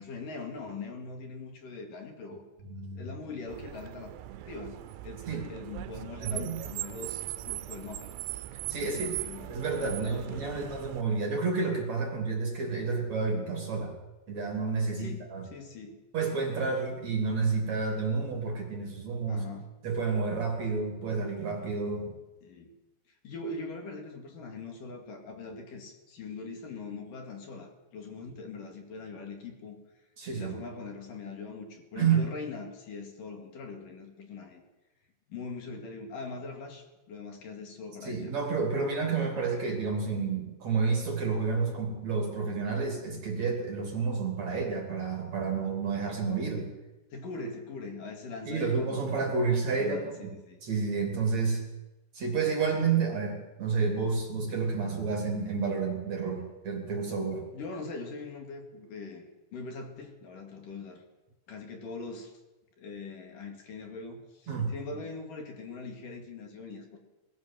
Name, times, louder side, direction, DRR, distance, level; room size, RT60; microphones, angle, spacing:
voice 1, 0.0-2.4 2.9-4.1 4.5-4.7 5.0-8.1 8.8-10.7 15.0-15.3 15.5-16.0 19.3-19.7 22.4-22.7 23.1-29.8 30.3-34.6 35.3-38.3 47.1-49.5 49.8-50.6 57.5-59.3 59.5-61.0 61.5-62.4 62.8-67.0, left 3 dB, 50° left, 3 dB, 3.3 m, -42 dB
voice 2, 2.7-3.1 5.3-5.5 6.2-6.6 8.7-9.2 9.5-13.9 14.3-15.4 16.1-19.4 19.8-22.2 30.2-30.5 32.0-32.3 38.0-46.7 48.5-50.3 50.6-51.6 52.1-57.5 64.5-64.7, right 4 dB, 40° right, 1 dB, 3.4 m, -30 dB
Car, 3.5-11.0, right 16 dB, 90° right, 3.5 m, -39 dB
21.5 x 16.5 x 7.6 m, 1.1 s
omnidirectional pair, 5.8 m